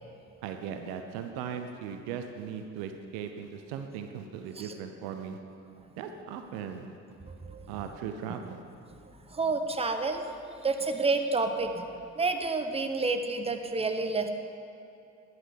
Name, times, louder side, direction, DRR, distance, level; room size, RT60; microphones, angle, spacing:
voice 1, 0.4-5.4 6.0-7.0 7.7-8.6, right 7 dB, 70° right, 6 dB, 0.8 m, -38 dB
voice 2, 7.3-7.7 9.3-10.2 10.6-11.8 12.2-14.3, right 3 dB, 15° right, 6 dB, 0.9 m, -29 dB
10.5 x 6.2 x 6.6 m, 2.7 s
hypercardioid pair, 45°, 38 cm